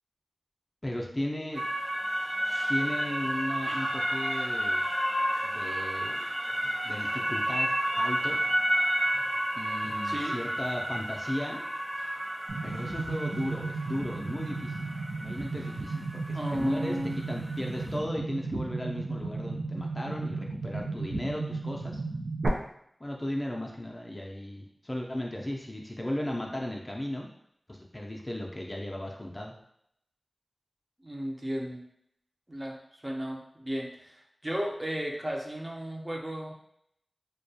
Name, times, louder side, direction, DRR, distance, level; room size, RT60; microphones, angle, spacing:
voice 1, 0.8-1.6 2.7-4.9 5.4-6.2 6.8-8.4 9.5-11.6 12.6-14.9 15.2-17.0 17.3-22.0 23.0-27.3 27.7-29.5, left 1 dB, 30° left, 0 dB, 0.4 m, -36 dB
sound 1, 1.5-17.9, equal, 40° right, 1.0 m, -31 dB
sound 2, 12.5-22.5, right 3 dB, 85° right, 0.3 m, -34 dB
voice 2, 16.3-17.2 31.0-31.8 32.5-36.5, equal, 25° right, -1 dB, 0.5 m, -34 dB
2.3 x 2.2 x 2.7 m, 0.72 s
cardioid pair, 40°, 0 cm